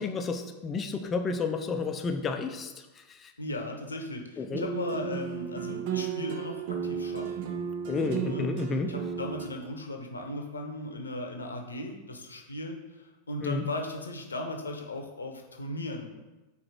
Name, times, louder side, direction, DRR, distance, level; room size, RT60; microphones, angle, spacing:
voice 1, 0.0-3.3 4.4-4.7 7.9-8.9 13.4-13.6, left 4 dB, 25° left, 6 dB, 0.6 m, -31 dB
voice 2, 3.4-7.4 8.2-8.5 8.9-16.2, left 1 dB, 75° left, 3 dB, 0.9 m, -37 dB
sound 1, 4.5-9.5, right 8 dB, 50° right, 0.8 m, -34 dB
4.8 x 4.3 x 5.8 m, 1.1 s
figure-of-eight pair, 90°, 0 cm